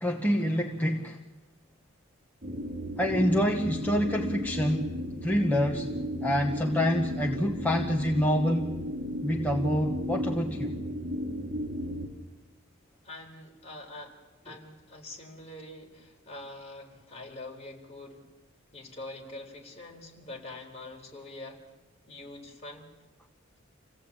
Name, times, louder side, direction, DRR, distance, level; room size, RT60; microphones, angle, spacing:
voice 1, 0.0-1.2 3.0-5.9 6.2-8.8 9.2-10.8 14.5-14.6, equal, 10° left, 1.1 m, -27 dB
sound 1, 2.4-12.1, equal, 40° right, 3.7 m, -34 dB
voice 2, 13.0-14.2 14.4-18.3 18.7-21.6 22.1-22.9, left 2 dB, 30° left, 4.2 m, -44 dB
27.5 x 17.0 x 8.7 m
head